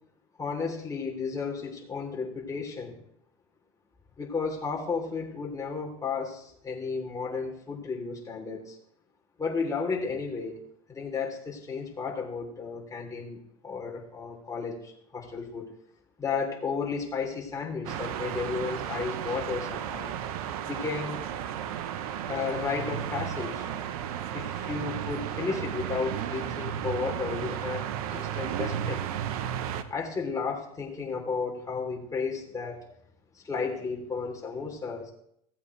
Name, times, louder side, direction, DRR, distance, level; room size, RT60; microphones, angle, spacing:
voice 1, 0.4-3.0 4.2-8.8 9.4-10.6 10.9-15.7 16.2-20.1 20.6-21.2 22.3-23.7 24.3-29.0 29.9-32.8 33.3-35.1, left 5 dB, 20° left, -1 dB, 3.4 m, -33 dB
sound 1, 17.8-29.8, right 10 dB, 75° right, 1.0 m, -34 dB
16.5 x 8.2 x 3.3 m, 0.70 s
hypercardioid pair, 95°, 19 cm